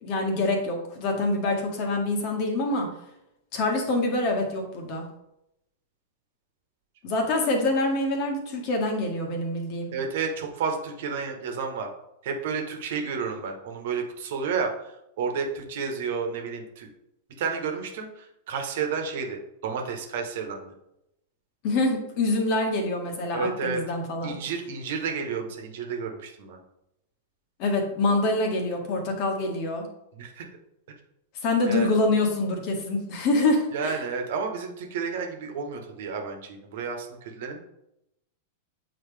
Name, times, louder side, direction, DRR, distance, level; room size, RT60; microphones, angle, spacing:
voice 1, 0.0-2.9 3.5-5.1 7.0-9.9 21.6-24.4 27.6-29.9 31.4-34.0, left 2 dB, 45° left, 2 dB, 1.7 m, -25 dB
voice 2, 9.9-11.9 12.2-16.9 17.4-20.7 23.3-23.8 24.2-26.6 30.1-30.4 31.6-31.9 33.7-37.6, right 5 dB, 60° right, 3 dB, 1.3 m, -31 dB
8.4 x 4.2 x 3.4 m, 0.85 s
figure-of-eight pair, 95°, 0 cm